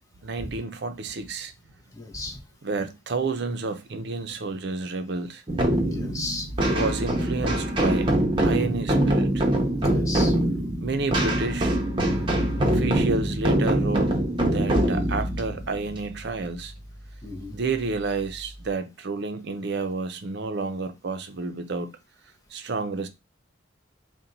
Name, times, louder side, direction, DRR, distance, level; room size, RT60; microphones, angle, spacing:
voice 1, 0.2-1.5 2.6-5.4 6.7-8.1 8.4-9.5 10.8-11.8 12.6-14.2 14.5-16.7 17.5-22.0 22.5-23.1, right 3 dB, 55° right, 0.5 m, -30 dB
voice 2, 1.9-2.4 5.9-6.7 9.8-10.4 17.2-17.6, left 2 dB, 15° left, 0.7 m, -35 dB
sound 1, 5.5-16.9, right 1 dB, 25° right, 0.7 m, -24 dB
4.2 x 2.2 x 3.9 m
head